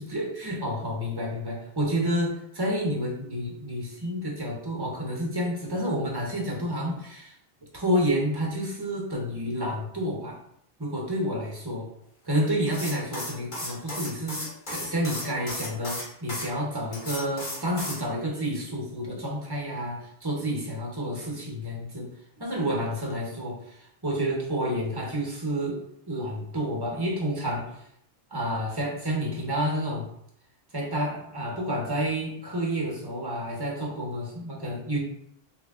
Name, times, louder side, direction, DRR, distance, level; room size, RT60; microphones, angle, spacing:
voice 1, 0.0-7.3 7.7-10.4 10.8-11.9 12.2-22.1 22.4-23.5 24.0-25.8 26.1-27.8 28.3-30.1 30.7-35.0, equal, 25° right, -2 dB, 0.9 m, -29 dB
sound 1, 12.7-16.5 16.9-18.0, left 1 dB, 50° left, 1.3 m, -35 dB
3.1 x 2.7 x 3.6 m, 0.72 s
omnidirectional pair, 1.0 m